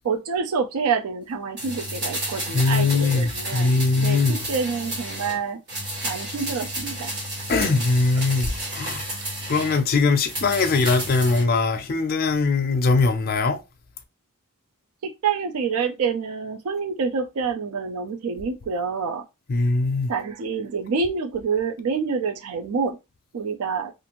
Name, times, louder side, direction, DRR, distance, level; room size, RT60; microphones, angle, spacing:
voice 1, 0.0-5.6 6.0-7.5 15.0-19.2 20.1-23.0 23.3-23.9, right 5 dB, 85° right, 0.4 m, -27 dB
sound 1, 1.6-5.4 5.7-9.8 10.2-11.5 11.8-11.9, right 1 dB, 55° right, 1.4 m, -32 dB
voice 2, 2.5-4.5 7.5-9.1 9.5-13.6 19.5-20.1, left 3 dB, 45° left, 0.4 m, -21 dB
2.5 x 2.5 x 2.9 m
head